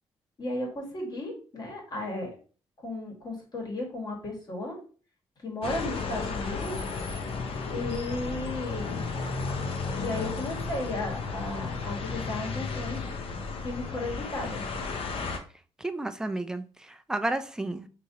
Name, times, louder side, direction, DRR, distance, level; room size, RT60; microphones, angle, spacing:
voice 1, 0.4-2.3 2.8-4.8 5.4-6.8 7.7-9.0 9.9-13.1 13.6-14.7, left 2 dB, 40° left, -1 dB, 1.7 m, -34 dB
sound 1, 5.6-15.4, left 4 dB, 55° left, 0.7 m, -33 dB
voice 2, 15.8-17.9, right 2 dB, 5° right, 9 dB, 0.3 m, -32 dB
5.0 x 2.9 x 2.8 m, 0.40 s
cardioid pair, 130°, 11 cm